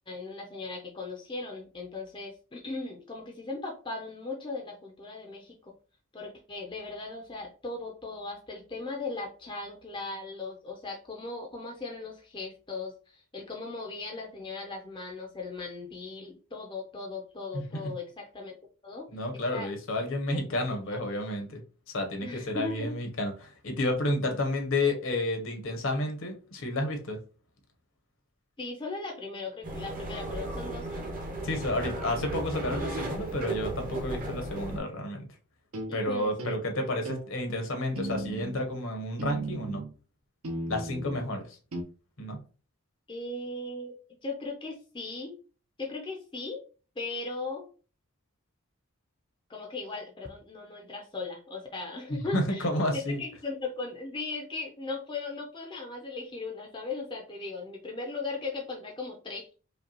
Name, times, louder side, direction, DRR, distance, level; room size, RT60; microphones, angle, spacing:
voice 1, 0.1-5.7 6.1-18.6 18.8-19.1 19.3-19.7 20.3-20.4 20.9-21.2 22.2-22.9 28.6-31.1 35.9-36.9 43.1-44.0 44.2-45.4 45.8-46.6 47.0-47.7 49.5-52.7 52.9-59.5, left 3 dB, 20° left, 1 dB, 0.5 m, -38 dB
voice 2, 17.5-17.9 19.1-21.6 21.9-27.2 31.4-35.3 35.9-39.8 40.7-41.6 42.2-42.4 52.1-53.2, left 1 dB, 60° left, 4 dB, 0.9 m, -31 dB
sound 1, 29.6-34.8, right 2 dB, 35° right, 0.7 m, -35 dB
sound 2, 35.7-35.9 36.4-36.6 37.0-37.3 37.9-38.6 39.2-39.9 40.4-41.2 41.7-41.8, right 2 dB, 75° right, 0.9 m, -35 dB
5.1 x 2.3 x 2.9 m, 0.37 s
head